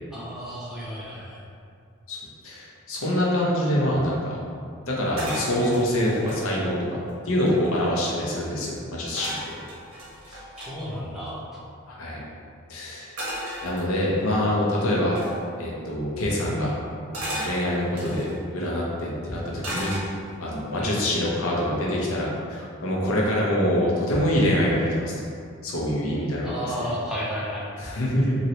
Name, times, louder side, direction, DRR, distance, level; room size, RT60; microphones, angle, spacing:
voice 1, 0.1-1.4 10.6-11.5 20.8-21.0 26.4-27.7, equal, ahead, -9 dB, 0.5 m, -32 dB
voice 2, 2.4-4.4 4.9-6.8 7.2-9.3 10.3-10.4 11.9-12.2 12.7-13.2 13.6-15.2 15.6-16.8 17.2-18.3 18.5-19.9 20.4-25.1 25.6-26.5 26.8-26.9 27.8-28.3, left 1 dB, 70° left, -4 dB, 0.7 m, -25 dB
sound 1, 5.2-6.5 7.0-7.1 7.3-8.0 9.2-10.7 13.2-14.2 15.2-15.4 17.1-18.4 19.6-20.5 20.9-21.2, equal, 90° right, 0.9 m, -35 dB
3.0 x 2.7 x 2.8 m, 2.3 s
head